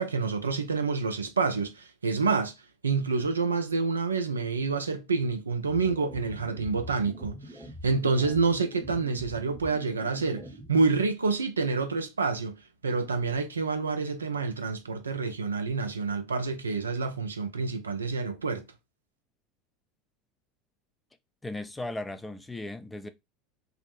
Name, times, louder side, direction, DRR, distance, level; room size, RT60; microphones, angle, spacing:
voice 1, 0.0-2.5 2.8-12.6 12.8-18.6, right 4 dB, 90° right, 0.4 m, -28 dB
sound 1, 5.7-10.7, equal, 15° right, 0.9 m, -44 dB
voice 2, 21.4-23.1, left 2 dB, 10° left, 0.4 m, -36 dB
2.5 x 2.0 x 3.1 m
hypercardioid pair, 75°, 0 cm